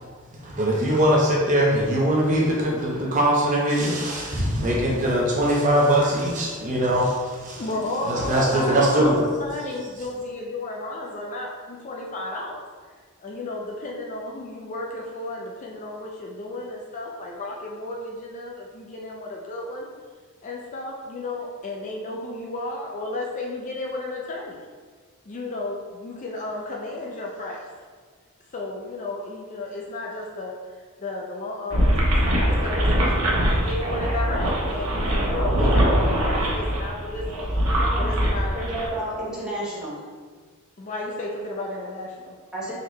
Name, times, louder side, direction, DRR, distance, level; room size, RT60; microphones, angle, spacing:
voice 1, 0.4-7.6 8.0-9.2, right 1 dB, 35° right, -4 dB, 0.6 m, -21 dB
voice 2, 7.6-12.6 13.2-19.9 20.4-24.6 25.3-27.6 28.5-30.5 31.0-31.9 32.2-37.6 38.0-38.6 40.8-42.4, left 2 dB, 35° left, -2 dB, 0.4 m, -33 dB
Parque da Cidade - Caminho em terra batida, 31.7-38.9, equal, 85° right, 0.8 m, -22 dB
voice 3, 38.5-40.1 42.5-42.7, right 1 dB, 5° right, -10 dB, 1.3 m, -31 dB
3.9 x 3.0 x 3.1 m, 1.5 s
head